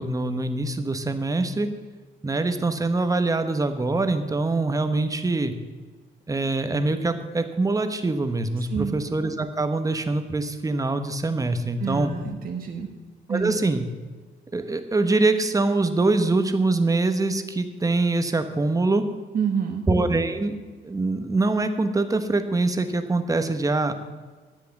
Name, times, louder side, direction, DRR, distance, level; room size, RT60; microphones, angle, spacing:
voice 1, 0.0-1.7 2.2-5.5 6.3-12.1 13.3-13.9 14.5-19.1 19.9-20.6 20.8-23.9, right 2 dB, 15° right, 8 dB, 1.1 m, -24 dB
voice 2, 11.8-12.9 13.3-13.6 19.3-19.8, right 7 dB, 45° right, 3 dB, 1.3 m, -28 dB
10.5 x 7.6 x 7.2 m, 1.3 s
cardioid pair, 90°, 20 cm